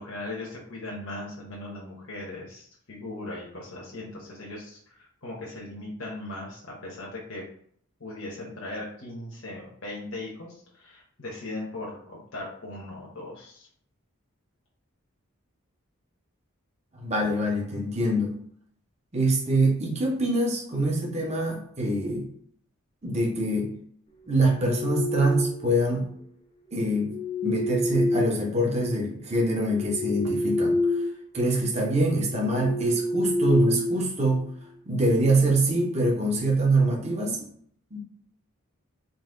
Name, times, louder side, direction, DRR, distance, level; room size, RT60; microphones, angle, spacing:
voice 1, 0.0-7.4 8.0-13.7, left 2 dB, 65° left, -4 dB, 1.1 m, -38 dB
voice 2, 16.9-18.4 19.1-22.3 23.0-23.7 24.3-26.1 26.7-27.1 27.4-30.8 31.3-34.4 34.9-37.5 37.9-38.0, right 1 dB, 30° right, -1 dB, 0.9 m, -24 dB
sound 1, 24.3-25.8 26.8-28.9 29.4-31.2 31.5-31.7 32.2-34.6, left 2 dB, 30° left, 0.5 m, -29 dB
4.0 x 2.7 x 3.8 m, 0.63 s
head